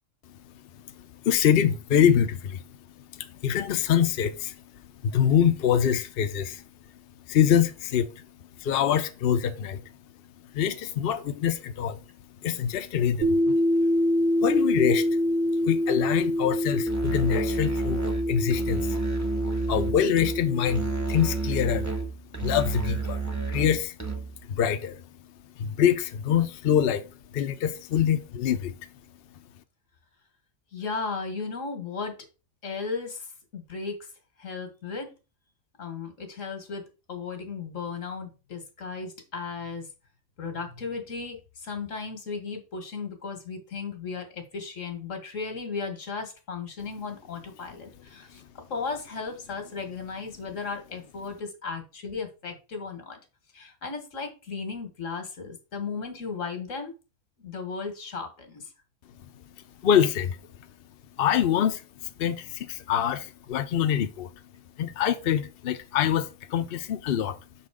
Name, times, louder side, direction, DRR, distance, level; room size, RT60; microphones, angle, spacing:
voice 1, 1.0-2.6 3.1-4.6 5.0-6.6 7.3-8.3 8.6-9.8 10.5-12.0 12.4-13.6 14.3-15.1 15.6-19.0 19.7-21.9 22.4-23.2 23.5-24.0 24.5-25.0 25.6-28.7 59.8-60.4 61.2-64.3 64.8-67.4, left 9 dB, 55° left, 0.8 m, -25 dB
sound 1, 13.2-22.0, left 1 dB, 70° right, 1.7 m, -26 dB
Musical instrument, 16.9-24.5, right 4 dB, 15° right, 1.1 m, -31 dB
voice 2, 30.7-32.3 32.6-34.0 34.4-35.1 35.8-39.9 40.4-53.2 53.5-56.9 57.4-58.7, left 4 dB, 90° left, 2.0 m, -35 dB
6.2 x 4.2 x 4.9 m
omnidirectional pair, 1.3 m